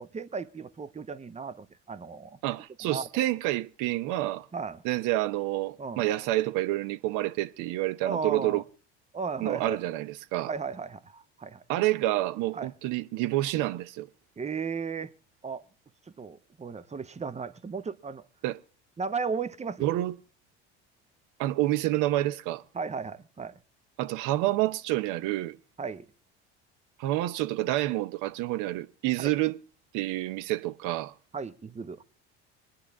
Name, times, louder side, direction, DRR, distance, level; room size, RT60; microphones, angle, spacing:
voice 1, 0.0-2.4 2.9-3.2 4.5-4.8 5.8-6.1 8.0-8.6 9.1-9.8 10.5-11.6 12.5-12.7 14.4-15.1 15.4-15.6 16.2-18.2 19.0-19.9 22.7-23.6 25.8-26.1 29.2-29.3 31.3-32.0, right 5 dB, 20° right, 1.0 m, -35 dB
voice 2, 2.4-4.5 4.8-8.6 9.4-10.5 11.7-14.1 18.4-18.6 19.8-20.2 21.4-22.6 24.0-25.6 27.0-29.6 29.9-31.1, right 16 dB, 65° right, 0.9 m, -28 dB
25.5 x 10.0 x 3.6 m
hypercardioid pair, 70°, 34 cm